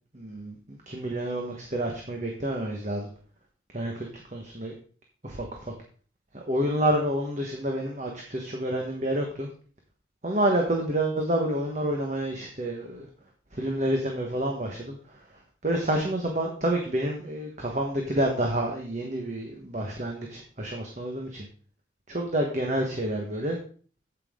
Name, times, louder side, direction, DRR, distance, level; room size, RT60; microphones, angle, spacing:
voice 1, 0.1-0.6 0.9-3.1 3.7-4.7 5.2-5.5 6.3-9.5 10.2-13.1 13.5-15.0 15.6-21.5 22.1-23.6, right 1 dB, 40° right, 1 dB, 1.3 m, -28 dB
9.0 x 8.4 x 3.7 m, 0.42 s
head